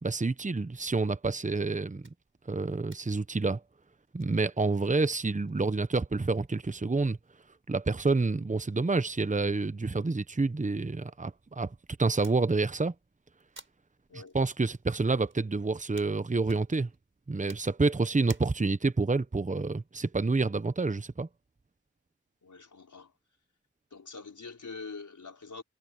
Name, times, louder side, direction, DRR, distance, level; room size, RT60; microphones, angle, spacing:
voice 1, 0.0-2.0 2.5-3.6 4.1-7.2 7.7-12.9 14.3-16.9 17.3-21.3, right 3 dB, 25° right, 0.9 m, -28 dB
sound 1, 2.0-19.0, right 3 dB, 40° right, 5.3 m, -59 dB
voice 2, 22.4-23.1 23.9-25.6, left 4 dB, 75° left, 5.2 m, -44 dB
wide cardioid pair, 55°, 30 cm